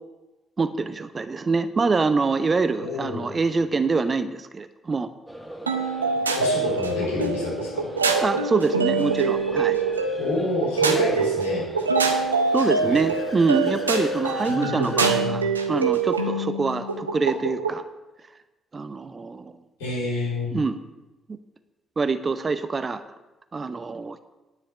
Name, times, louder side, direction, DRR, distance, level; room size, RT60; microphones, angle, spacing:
voice 1, 0.6-5.1 8.2-9.8 12.5-17.8 18.7-19.6 20.5-20.8 22.0-23.0 23.5-24.2, right 4 dB, 30° right, 11 dB, 0.7 m, -25 dB
voice 2, 2.8-3.3 6.4-7.9 10.2-11.7 12.8-13.0 14.5-15.4 19.8-20.5, left 2 dB, 70° left, -6 dB, 3.7 m, -28 dB
sound 1, 5.3-15.1, right 1 dB, ahead, 1.4 m, -40 dB
sound 2, 5.7-17.8, right 4 dB, 85° right, 0.6 m, -25 dB
Car / Accelerating revving vroom, 11.9-15.2, left 2 dB, 35° left, 1.8 m, -44 dB
10.0 x 5.1 x 8.0 m, 1.1 s
figure-of-eight pair, 40°, 0 cm